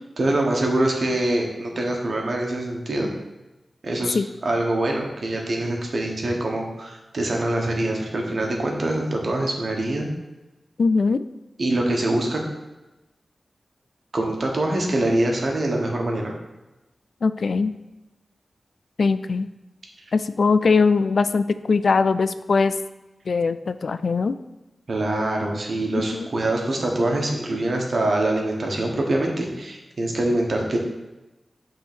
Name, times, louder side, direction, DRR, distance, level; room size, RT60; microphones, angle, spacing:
voice 1, 0.2-3.1 3.8-4.2 4.4-10.1 11.6-12.4 14.1-16.3 24.9-30.8, right 1 dB, 60° right, 0 dB, 1.3 m, -24 dB
voice 2, 10.8-11.2 17.2-17.7 19.0-19.5 20.1-22.7 23.3-24.3 26.1-26.3, left 4 dB, 75° left, 12 dB, 0.3 m, -21 dB
5.8 x 3.8 x 6.0 m, 1.0 s
wide cardioid pair, 75°, 0 cm